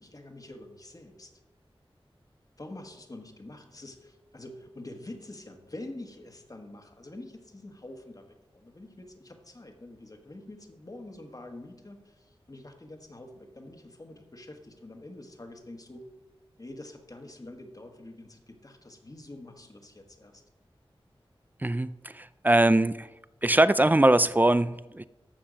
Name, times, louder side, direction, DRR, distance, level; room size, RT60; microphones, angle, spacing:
voice 1, 0.0-1.4 2.6-16.1 16.6-20.4, left 1 dB, 40° left, 4 dB, 1.4 m, -46 dB
voice 2, 21.6-23.1 23.4-25.0, right 1 dB, 20° right, 16 dB, 0.4 m, -22 dB
14.0 x 5.6 x 5.1 m, 1.0 s
wide cardioid pair, 55°, 10 cm